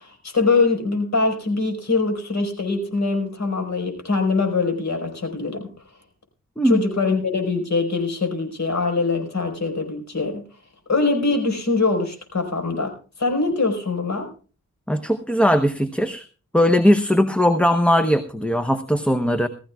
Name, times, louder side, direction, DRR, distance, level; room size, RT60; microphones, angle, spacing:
voice 1, 0.0-5.7 6.6-10.4 10.9-14.3, left 3 dB, 60° left, 4 dB, 4.8 m, -23 dB
voice 2, 14.9-16.2 16.5-19.5, equal, 5° left, 8 dB, 0.8 m, -19 dB
20.5 x 14.0 x 2.3 m, 0.37 s
wide cardioid pair, 115°, 31 cm